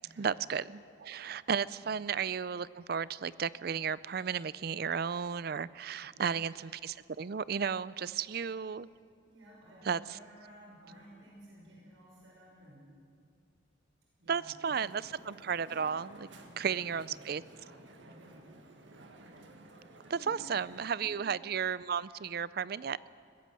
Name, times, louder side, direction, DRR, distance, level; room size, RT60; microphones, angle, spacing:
voice 1, 0.2-8.9 9.9-10.0 14.3-16.3 16.6-17.4 20.1-23.1, right 7 dB, 50° right, 19 dB, 0.4 m, -34 dB
voice 2, 6.0-6.5 9.2-12.8 14.2-14.9 16.3-17.0 17.8-18.5 20.2-20.5 20.9-21.3, equal, 90° right, -4 dB, 5.8 m, -55 dB
Crowd, 14.6-20.9, right 2 dB, 70° right, 1.9 m, -54 dB
21.0 x 17.0 x 7.6 m, 2.4 s
head